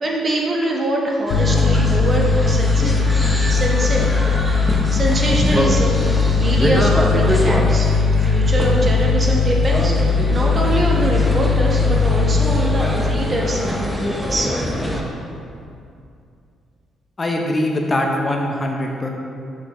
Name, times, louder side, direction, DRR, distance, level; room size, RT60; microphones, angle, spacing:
voice 1, 0.0-2.9 3.5-4.0 4.9-6.0 6.3-14.5, right 1 dB, 35° right, -2 dB, 1.1 m, -24 dB
sound 1, 1.3-14.5, left 4 dB, 85° left, 0.7 m, -18 dB
sound 2, 1.3-15.0, equal, 5° right, 0.8 m, -25 dB
voice 2, 17.2-19.1, left 1 dB, 30° left, 1 dB, 0.6 m, -22 dB
6.1 x 6.1 x 3.1 m, 2.4 s
cardioid pair, 90°, 0 cm